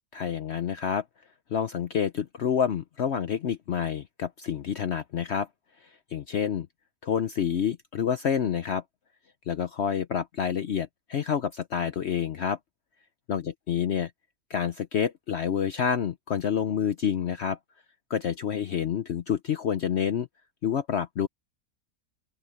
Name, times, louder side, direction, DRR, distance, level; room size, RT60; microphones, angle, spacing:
voice 1, 0.1-1.0 1.5-5.5 6.1-6.7 7.0-8.8 9.5-12.6 13.3-14.1 14.5-17.6 18.1-20.3 20.6-21.3, left 8 dB, 55° left, 0.9 m, -28 dB
open air
omnidirectional pair, 1.6 m